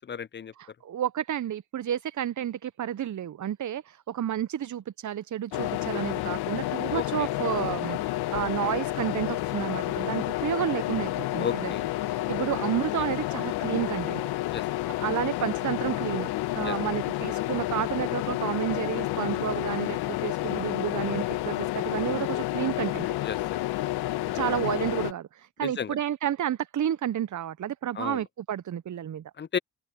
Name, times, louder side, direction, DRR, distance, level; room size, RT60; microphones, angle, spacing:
voice 1, 0.0-0.5 6.9-7.3 11.4-11.8 14.5-14.6 16.6-16.7 23.2-23.4 25.6-26.0 28.0-28.2 29.4-29.6, left 7 dB, 30° left, 0.6 m, -33 dB
voice 2, 0.6-11.7 12.1-14.2 15.0-23.1 24.3-29.2, right 10 dB, 50° right, 1.0 m, -31 dB
sound 1, 5.5-25.1, left 16 dB, 75° left, 1.9 m, -30 dB
hypercardioid pair, 40°, 39 cm